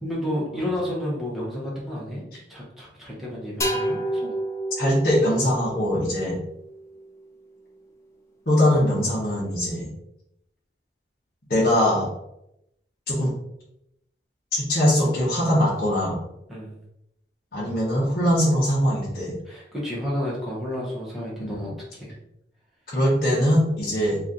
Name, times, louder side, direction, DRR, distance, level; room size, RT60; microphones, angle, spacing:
voice 1, 0.0-4.3 16.5-16.8 19.4-22.2, left 1 dB, ahead, -7 dB, 0.9 m, -31 dB
sound 1, 3.6-7.2, right 1 dB, 15° left, 0.5 m, -30 dB
voice 2, 4.8-6.4 8.5-9.9 11.5-12.1 13.1-13.3 14.5-16.2 17.5-19.3 21.4-21.6 22.9-24.2, equal, 55° left, -7 dB, 1.0 m, -21 dB
3.0 x 2.5 x 3.8 m, 0.82 s
head